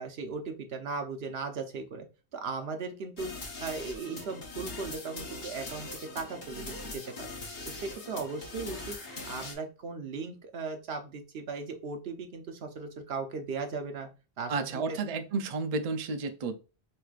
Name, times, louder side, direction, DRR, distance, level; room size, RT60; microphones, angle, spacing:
voice 1, 0.0-2.1 2.3-3.3 3.6-5.9 6.1-7.3 7.6-14.1 14.4-15.0, right 4 dB, 65° right, 0.9 m, -37 dB
sound 1, 3.2-9.5, left 2 dB, 50° left, 1.3 m, -41 dB
voice 2, 14.5-16.6, right 4 dB, 50° right, 0.4 m, -32 dB
4.6 x 3.2 x 2.4 m
omnidirectional pair, 1.1 m